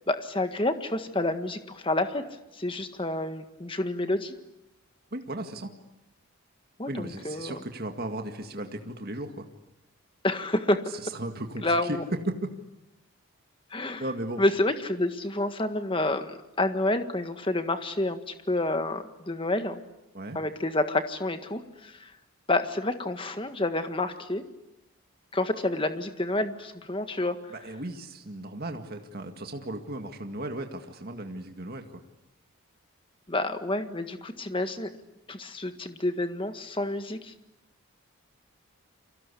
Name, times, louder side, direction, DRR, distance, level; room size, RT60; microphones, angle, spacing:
voice 1, 0.1-2.2 2.5-4.3 6.8-7.6 10.2-10.8 11.6-12.0 13.7-14.0 14.4-19.8 20.3-22.1 22.5-24.4 25.3-27.3 33.3-34.9 35.3-37.3, left 2 dB, 25° left, 8 dB, 1.6 m, -29 dB
voice 2, 5.1-5.7 6.9-9.5 11.0-12.4 14.0-14.4 20.1-20.4 27.5-32.0, right 1 dB, 45° right, 5 dB, 2.0 m, -36 dB
29.5 x 24.0 x 8.4 m, 0.93 s
head